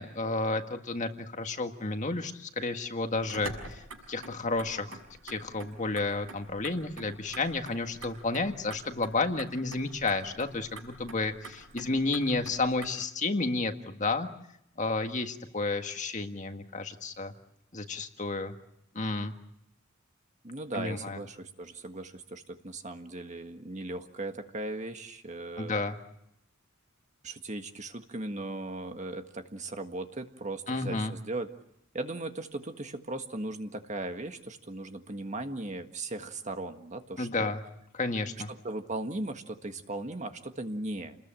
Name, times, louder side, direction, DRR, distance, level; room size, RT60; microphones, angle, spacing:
voice 1, 0.0-5.0 5.2-14.3 14.8-17.3 17.7-18.5 18.9-19.3 20.7-21.2 25.6-26.0 30.7-31.1 37.2-37.6 37.9-38.5, left 3 dB, 35° left, 6 dB, 1.7 m, -31 dB
Motor vehicle (road), 3.1-12.9, right 3 dB, 80° right, 6.0 m, -47 dB
voice 2, 20.4-25.7 27.2-31.5 31.9-37.5 38.5-41.2, right 2 dB, 35° right, 6 dB, 1.6 m, -38 dB
29.5 x 20.5 x 9.0 m, 0.79 s
head